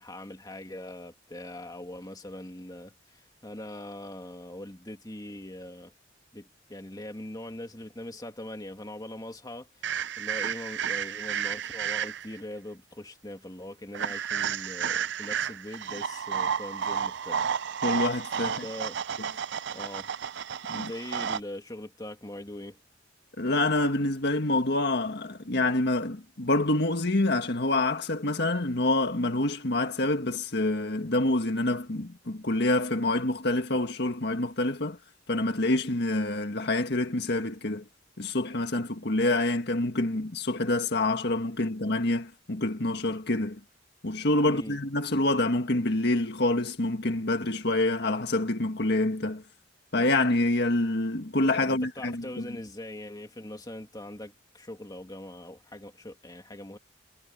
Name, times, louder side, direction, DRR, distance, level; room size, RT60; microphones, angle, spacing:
voice 1, 0.0-5.9 6.3-17.5 18.4-19.0 19.7-20.1 20.7-22.8 44.4-44.8 51.6-56.8, left 1 dB, 20° left, 2.4 m, -41 dB
sound 1, 9.8-12.4 13.9-21.4, right 8 dB, 65° right, 0.5 m, -32 dB
voice 2, 17.8-18.6 20.7-20.9 23.4-35.0 35.3-37.8 38.2-43.6 44.0-49.4 49.9-52.6, left 2 dB, 60° left, 1.7 m, -27 dB
head